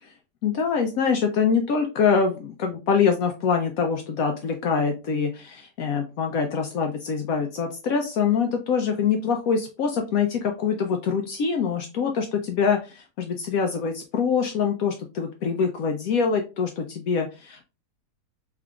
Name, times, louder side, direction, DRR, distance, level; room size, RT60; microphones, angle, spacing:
voice 1, 0.4-17.7, left 6 dB, 70° left, 4 dB, 0.9 m, -24 dB
3.6 x 3.3 x 2.4 m, 0.30 s
omnidirectional pair, 1.8 m